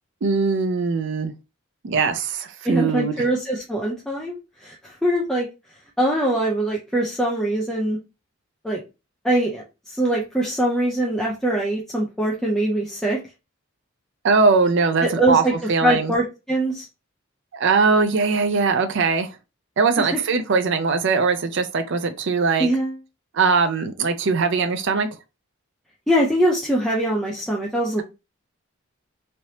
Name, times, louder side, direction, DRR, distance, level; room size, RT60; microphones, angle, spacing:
voice 1, 0.2-1.3 1.8-3.2 14.2-15.4 15.7-16.1 17.5-19.3 19.8-22.7 23.3-25.1, right 4 dB, 60° right, 0.5 m, -20 dB
voice 2, 2.6-5.5 6.0-8.0 8.6-8.8 9.2-13.2 15.0-16.9 20.0-20.2 22.6-23.0 26.1-28.0, right 1 dB, ahead, 0.6 m, -23 dB
3.2 x 2.8 x 2.8 m
head